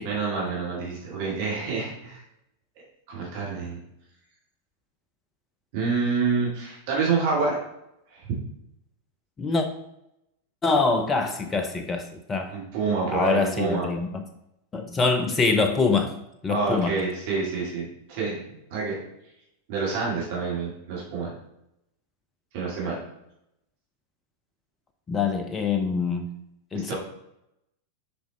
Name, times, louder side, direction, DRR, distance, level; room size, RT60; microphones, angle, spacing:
voice 1, 0.0-2.2 3.1-3.8 5.7-7.6 8.1-8.3 12.5-13.9 16.5-18.4 18.7-19.0 19.7-21.3 22.5-22.9 26.7-27.0, right 4 dB, 50° right, -4 dB, 2.1 m, -27 dB
voice 2, 10.6-12.5 13.1-14.2 14.7-16.1 16.4-16.9 25.1-26.3 26.7-26.9, left 4 dB, 20° left, 7 dB, 0.6 m, -24 dB
6.8 x 4.9 x 4.0 m, 0.83 s
figure-of-eight pair, 90°, 0 cm